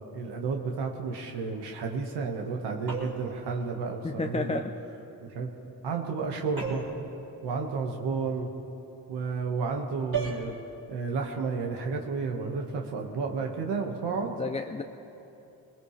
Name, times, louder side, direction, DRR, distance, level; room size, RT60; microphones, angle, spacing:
voice 1, 0.1-4.6 5.2-5.5 5.8-6.9 7.4-8.5 9.1-10.5 10.9-14.3, right 4 dB, 70° right, 2 dB, 1.7 m, -31 dB
sound 1, 2.9-3.4 6.6-7.0 10.1-10.5, right 6 dB, 50° right, 4.0 m, -33 dB
voice 2, 4.0-4.7 14.4-14.8, left 3 dB, 15° left, 4 dB, 0.6 m, -31 dB
21.0 x 20.0 x 3.3 m, 2.8 s
cardioid pair, 75°, 42 cm